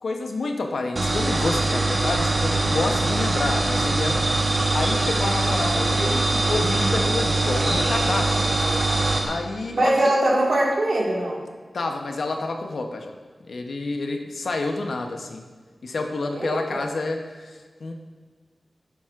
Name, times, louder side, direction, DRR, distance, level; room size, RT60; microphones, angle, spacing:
voice 1, 0.0-8.4 8.8-8.9 9.2-9.9 11.7-13.1 13.5-15.4 15.8-17.9, left 3 dB, 75° left, 4 dB, 0.8 m, -29 dB
sound 1, 1.0-9.3, right 2 dB, 45° right, 0.9 m, -22 dB
voice 2, 9.8-11.4 16.4-16.8, right 1 dB, 65° right, -3 dB, 1.8 m, -22 dB
10.5 x 7.1 x 2.5 m, 1.5 s
wide cardioid pair, 115°, 0 cm